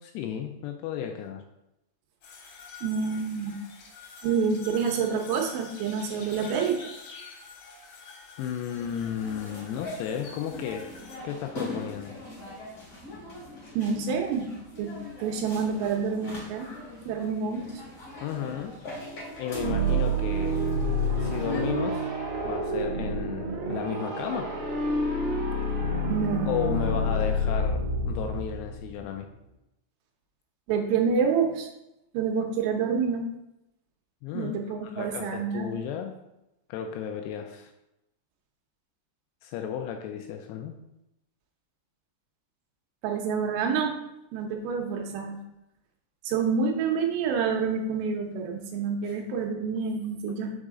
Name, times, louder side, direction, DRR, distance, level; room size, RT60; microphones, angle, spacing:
voice 1, 0.0-1.4 8.4-10.9 11.2-12.2 18.2-18.8 19.4-20.6 21.2-22.1 22.4-24.5 26.5-29.3 34.2-34.6 34.8-36.1 36.7-37.7 39.4-40.8 49.0-49.1, left 8 dB, 85° left, 4 dB, 2.4 m, -34 dB
sound 1, 2.2-11.2, left 5 dB, 65° left, 2.5 m, -46 dB
voice 2, 2.8-3.5 4.2-6.8 13.7-14.5 14.8-14.9 15.2-16.7 17.1-17.8 26.1-26.9 30.7-31.7 32.1-33.3 34.3-35.8 43.0-44.0 44.3-45.3 46.2-50.5, right 6 dB, 90° right, 2 dB, 3.3 m, -28 dB
sound 2, 8.7-21.7, left 1 dB, 45° left, 1.7 m, -42 dB
sound 3, 19.5-29.2, equal, 50° right, 2.4 m, -28 dB
6.5 x 4.9 x 3.6 m, 0.89 s
omnidirectional pair, 5.3 m